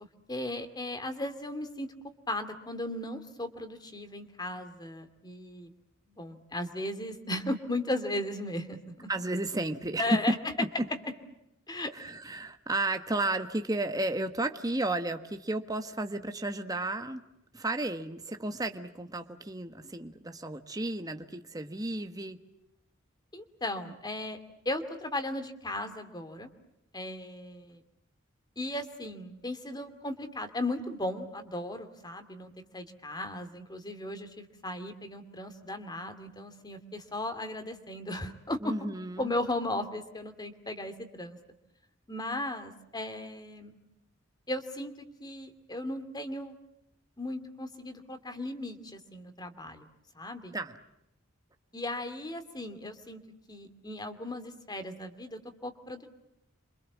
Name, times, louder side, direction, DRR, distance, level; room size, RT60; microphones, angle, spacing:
voice 1, 0.3-1.9 2.3-5.7 6.1-9.1 10.0-10.4 11.7-11.9 23.3-24.4 24.6-26.5 26.9-27.8 28.6-38.7 39.2-41.4 42.1-43.7 44.5-44.9 45.2-46.5 47.2-49.9 50.1-50.6 51.7-53.2 53.5-56.1, left 1 dB, 20° left, 8 dB, 2.6 m, -36 dB
voice 2, 9.1-10.9 11.9-17.3 17.5-22.4 38.6-39.3 50.5-50.8, right 2 dB, 20° right, 7 dB, 1.4 m, -33 dB
28.5 x 25.5 x 7.3 m, 0.83 s
head